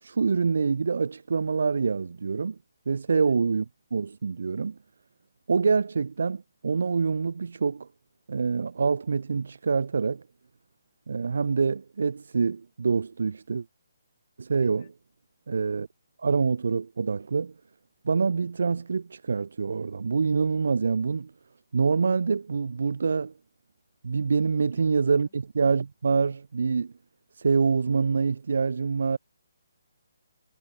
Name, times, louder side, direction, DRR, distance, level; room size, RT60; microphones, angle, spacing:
voice 1, 0.0-2.6 2.9-3.6 3.9-4.8 5.5-7.9 8.3-10.2 11.1-13.7 14.4-14.8 15.5-15.9 16.2-17.5 18.0-21.3 21.7-23.3 24.0-26.9 27.3-29.2, right 5 dB, 55° right, 0.3 m, -26 dB
voice 2, 3.1-3.4 14.6-14.9 24.7-24.8 25.2-25.3, left 10 dB, 35° left, 3.9 m, -54 dB
figure-of-eight pair, 140°, 0 cm